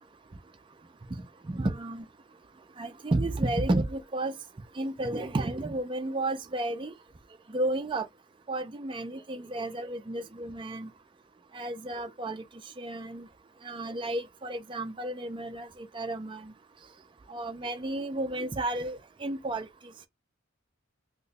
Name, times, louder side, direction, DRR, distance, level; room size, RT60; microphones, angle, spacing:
voice 1, 1.4-2.1 2.8-4.3 4.8-6.9 7.5-8.1 8.5-10.9 11.5-12.4 12.8-13.3 13.6-16.5 17.3-19.7, right 2 dB, 25° right, 0.4 m, -32 dB
2.9 x 2.2 x 4.0 m
head